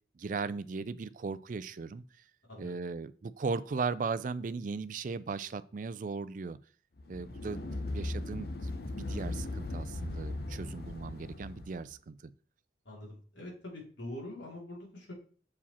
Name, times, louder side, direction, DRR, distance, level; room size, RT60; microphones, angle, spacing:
voice 1, 0.2-2.0 2.6-6.6 7.1-7.6 7.9-12.2, right 4 dB, 45° right, 15 dB, 0.4 m, -37 dB
sound 1, 7.0-11.8, left 2 dB, 55° left, 0.8 m, -38 dB
voice 2, 12.8-15.1, left 1 dB, 80° left, -2 dB, 3.0 m, -44 dB
7.2 x 4.9 x 4.2 m, 0.43 s
head